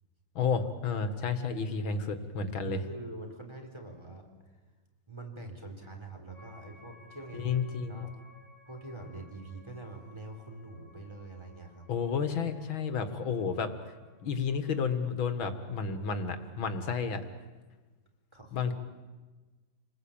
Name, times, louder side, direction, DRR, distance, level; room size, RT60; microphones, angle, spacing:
voice 1, 0.4-2.8 7.3-8.1 11.9-13.7 14.2-17.3 18.5-18.7, left 5 dB, 85° left, 9 dB, 2.6 m, -31 dB
voice 2, 2.6-4.3 5.1-7.5 7.9-8.1 8.7-11.9 18.3-18.7, right 2 dB, 15° right, 2 dB, 4.3 m, -45 dB
sound 1, 6.3-16.8, left 1 dB, 60° right, 8.7 m, -60 dB
29.0 x 20.5 x 8.9 m, 1.3 s
omnidirectional pair, 2.1 m